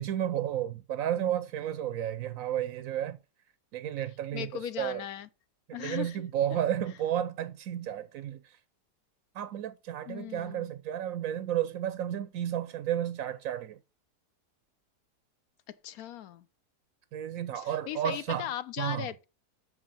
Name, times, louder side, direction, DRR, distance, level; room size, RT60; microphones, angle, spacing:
voice 1, 0.0-3.2 3.7-5.0 5.7-8.6 9.3-13.8 17.1-18.5 18.8-19.1, right 11 dB, 65° right, 0.9 m, -32 dB
voice 2, 4.3-5.3 5.7-6.2 6.5-6.6 10.1-10.7 15.8-16.5 17.6-19.2, left 11 dB, 70° left, 1.0 m, -38 dB
8.0 x 6.5 x 5.6 m
omnidirectional pair, 1.7 m